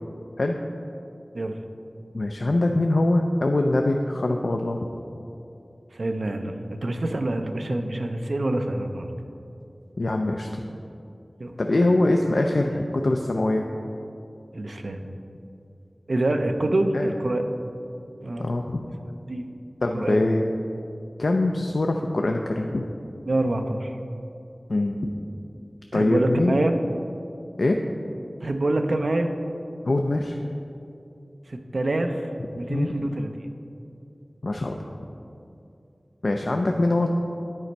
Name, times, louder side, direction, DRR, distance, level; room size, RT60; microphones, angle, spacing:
voice 1, 2.1-4.9 10.0-10.6 11.6-13.7 16.9-17.1 18.4-18.8 19.8-20.5 21.2-22.9 24.7-25.1 25.9-26.7 27.6-27.8 29.8-30.4 32.7-32.9 34.4-34.7 36.2-37.1, left 2 dB, 75° left, 3 dB, 0.4 m, -23 dB
voice 2, 5.9-9.1 11.4-11.5 14.5-15.0 16.1-17.4 18.2-18.5 19.3-19.5 19.9-20.2 23.3-23.9 25.9-26.7 28.4-29.3 31.5-32.3 32.5-33.3, right 2 dB, 80° right, 5 dB, 0.5 m, -26 dB
9.7 x 4.3 x 5.2 m, 2.6 s
wide cardioid pair, 55°, 0 cm